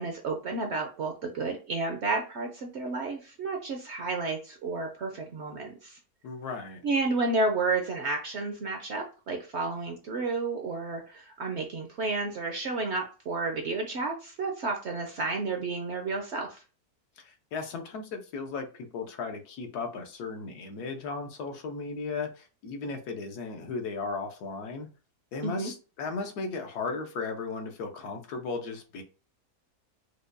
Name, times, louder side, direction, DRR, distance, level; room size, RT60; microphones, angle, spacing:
voice 1, 0.0-6.0 6.8-16.6 25.4-25.7, right 3 dB, 60° right, 3 dB, 0.7 m, -31 dB
voice 2, 6.2-6.8 17.2-24.9 25.3-29.0, left 4 dB, 80° left, 4 dB, 1.3 m, -36 dB
4.9 x 2.2 x 2.5 m, 0.34 s
omnidirectional pair, 1.7 m